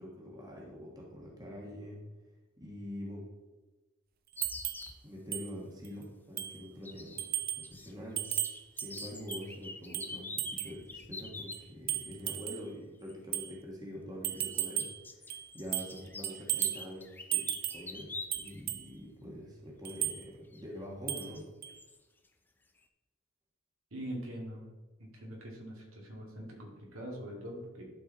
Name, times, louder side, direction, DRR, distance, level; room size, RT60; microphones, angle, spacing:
voice 1, 0.0-2.0 2.6-3.2 5.0-8.3 8.7-14.9 15.2-21.5, equal, 20° right, -2 dB, 1.4 m, -45 dB
sound 1, 4.4-5.0 6.8-7.9 8.2-11.6 13.0-13.1 14.3-18.6 18.9-19.0 20.5-20.6 21.2-21.4 21.8-22.0, left 3 dB, 10° left, 0.5 m, -45 dB
sound 2, 4.4-4.9 5.3-5.5 5.8-5.9 6.4-6.6 7.2-7.7 8.2-9.5 9.9-10.8 11.5-12.7 13.3-13.5 14.2-15.0 15.3-16.0 16.2-16.9 17.3-17.9 18.3-18.9 19.8-20.2 21.1-21.3 21.6-21.7, right 13 dB, 45° right, 0.5 m, -35 dB
voice 2, 23.9-24.6 25.0-27.9, equal, 80° right, -1 dB, 2.3 m, -43 dB
11.5 x 4.6 x 4.0 m, 1.2 s
head